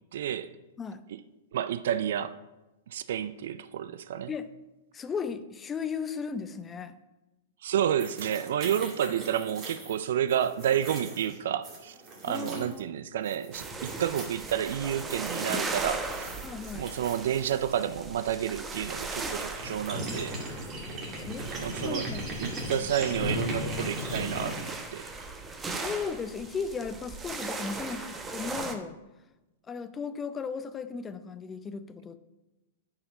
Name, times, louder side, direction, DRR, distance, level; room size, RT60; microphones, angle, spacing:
voice 1, 0.1-0.5 1.5-2.4 2.9-4.3 7.6-11.9 12.2-16.3 16.7-20.4 21.6-22.1 22.4-25.1, right 10 dB, 65° right, 0.4 m, -30 dB
voice 2, 4.9-6.9 12.3-12.9 16.4-16.9 21.1-21.4 21.8-22.3 25.7-29.0 29.7-32.2, left 5 dB, 20° left, 0.5 m, -36 dB
sound 1, 8.0-12.8 13.2-17.5 19.0-19.1 19.3-25.3, equal, 35° right, 2.2 m, -38 dB
sound 2, 13.5-28.8, right 3 dB, 15° right, 0.9 m, -38 dB
8.5 x 4.8 x 5.6 m
hypercardioid pair, 110°, 0 cm